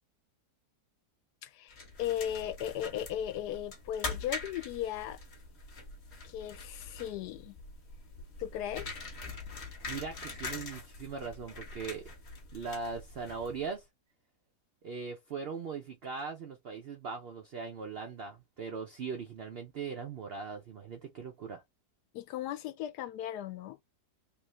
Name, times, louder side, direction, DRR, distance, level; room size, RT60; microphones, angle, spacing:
voice 1, 1.4-5.2 6.2-7.6 8.4-9.0 22.1-23.8, left 11 dB, 80° left, 1.1 m, -37 dB
sound 1, 1.7-13.8, left 3 dB, 45° left, 1.1 m, -44 dB
voice 2, 9.9-12.0 12.5-13.9 14.8-21.6, right 5 dB, 80° right, 0.5 m, -40 dB
3.5 x 2.5 x 3.1 m
omnidirectional pair, 1.7 m